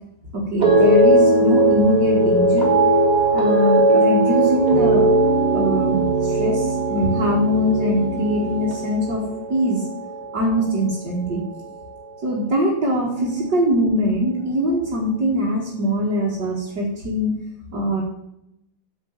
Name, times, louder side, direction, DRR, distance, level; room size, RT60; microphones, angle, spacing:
voice 1, 0.3-2.7 3.3-5.1 5.5-9.2 9.5-9.8 10.3-11.4 12.2-17.3 17.7-18.0, equal, 55° right, -4 dB, 2.4 m, -22 dB
sound 1, 0.6-11.0 11.3-11.8, right 2 dB, 20° right, 2.4 m, -19 dB
9.1 x 5.9 x 7.3 m, 0.82 s
omnidirectional pair, 2.2 m